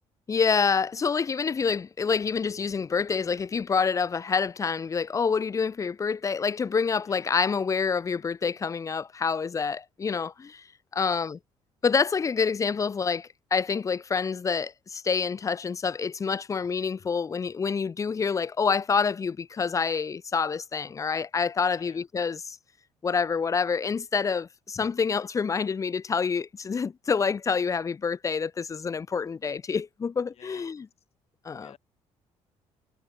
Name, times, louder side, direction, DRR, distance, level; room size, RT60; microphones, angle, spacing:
voice 1, 0.3-10.6 10.9-11.4 11.8-22.6 23.0-30.9 31.5-31.7, left 5 dB, 25° left, 0.4 m, -27 dB
voice 2, 21.7-22.1 30.3-30.8 31.6-31.8, left 9 dB, 60° left, 6.7 m, -53 dB
cardioid pair, 85°, 12 cm